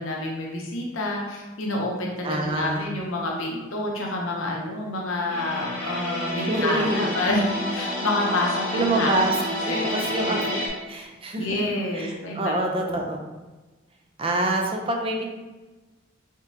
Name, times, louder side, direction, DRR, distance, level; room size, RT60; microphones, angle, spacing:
voice 1, 0.0-7.4 7.7-9.2 9.7-9.8 10.1-10.4 11.4-13.0, left 2 dB, 80° left, -2 dB, 0.8 m, -28 dB
voice 2, 2.2-2.9 6.5-7.2 8.7-9.4 9.6-11.6 11.9-13.3 14.2-15.2, right 1 dB, 25° right, 2 dB, 0.4 m, -26 dB
sound 1, 5.3-10.7, equal, 10° left, 1.1 m, -29 dB
3.6 x 3.5 x 2.7 m, 1.2 s
head